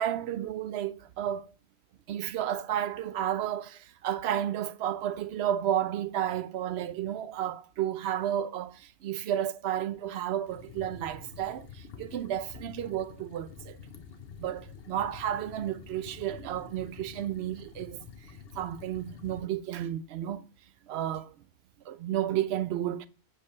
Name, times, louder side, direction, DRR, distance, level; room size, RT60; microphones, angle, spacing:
voice 1, 0.0-1.5 2.1-13.8 14.4-18.0 18.6-20.4 20.9-21.3 21.9-23.1, right 11 dB, 80° right, 0.8 m, -32 dB
sound 1, 10.5-19.4, left 6 dB, 65° left, 1.1 m, -48 dB
7.8 x 3.2 x 6.4 m
omnidirectional pair, 1.1 m